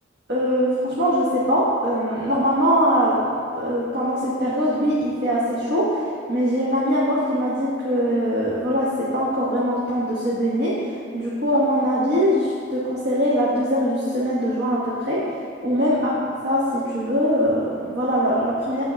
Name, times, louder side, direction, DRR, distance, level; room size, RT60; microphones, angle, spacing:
voice 1, 0.3-6.0 6.3-10.9 11.1-15.2 15.6-18.8, equal, 60° right, -7 dB, 1.1 m, -22 dB
8.6 x 3.7 x 5.1 m, 2.2 s
head